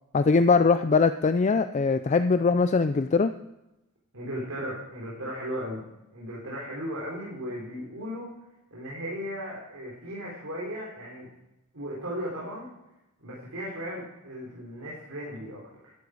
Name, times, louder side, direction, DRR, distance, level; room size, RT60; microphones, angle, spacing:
voice 1, 0.1-3.3, left 4 dB, 35° left, 10 dB, 0.4 m, -21 dB
voice 2, 4.1-5.8 6.1-8.3 8.7-11.3 11.7-12.7 13.2-15.9, equal, 65° right, -4 dB, 3.5 m, -36 dB
12.5 x 11.5 x 4.9 m, 0.92 s
head